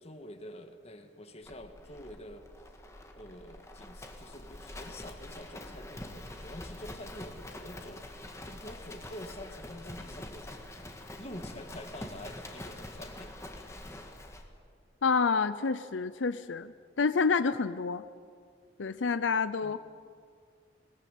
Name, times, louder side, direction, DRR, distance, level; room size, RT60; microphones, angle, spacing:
voice 1, 0.0-2.4 3.1-10.5 11.2-13.3 19.6-19.8, left 1 dB, 35° left, 7 dB, 1.7 m, -47 dB
Livestock farm animals working animals, 1.4-14.5, left 1 dB, 15° left, 1.8 m, -45 dB
voice 2, 15.0-18.0 18.8-19.8, left 5 dB, 85° left, 13 dB, 0.6 m, -28 dB
21.0 x 18.5 x 9.2 m, 2.1 s
head